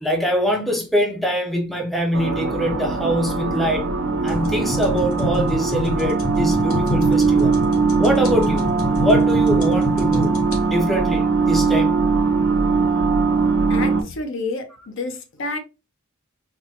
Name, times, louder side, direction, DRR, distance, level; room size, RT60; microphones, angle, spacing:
voice 1, 0.0-4.0 4.2-7.6 8.0-10.4 10.7-12.1, equal, ahead, 0.5 m, -23 dB
sound 1, 2.1-14.0, right 4 dB, 65° right, 0.5 m, -20 dB
sound 2, 4.3-10.6, left 1 dB, 85° left, 1.1 m, -28 dB
voice 2, 13.7-15.6, left 3 dB, 65° left, 0.7 m, -29 dB
4.2 x 2.1 x 2.7 m
head